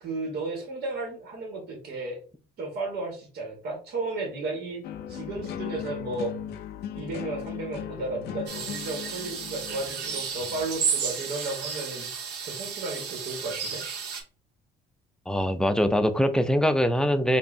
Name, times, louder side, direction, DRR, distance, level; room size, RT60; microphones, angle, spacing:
voice 1, 0.0-2.2 2.6-4.8 5.1-6.3 6.9-12.1 12.4-13.8, right 2 dB, 70° right, 1 dB, 1.5 m, -34 dB
sound 1, 4.8-10.9, left 9 dB, 70° left, 0.5 m, -38 dB
sound 2, 8.5-14.2, right 6 dB, 85° right, 1.0 m, -33 dB
voice 2, 15.3-17.4, equal, 5° left, 9 dB, 0.4 m, -23 dB
4.9 x 2.7 x 2.7 m, 0.38 s
cardioid pair, 110°, 17 cm